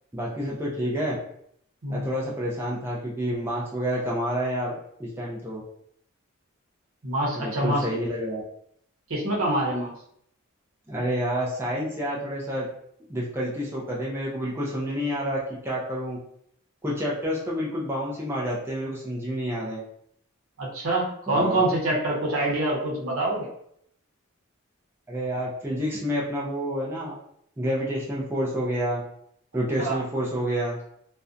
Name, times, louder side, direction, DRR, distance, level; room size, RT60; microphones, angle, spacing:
voice 1, 0.1-1.2 1.9-4.7 5.0-5.6 7.3-8.4 10.9-12.7 13.1-16.2 16.8-19.8 21.3-21.6 25.1-27.2 27.6-29.0 29.5-30.8, equal, 10° right, -6 dB, 0.4 m, -29 dB
voice 2, 7.0-7.8 9.1-9.9 20.6-23.5 29.8-30.0, right 1 dB, 70° right, -3 dB, 0.8 m, -25 dB
2.5 x 2.1 x 2.4 m, 0.69 s
head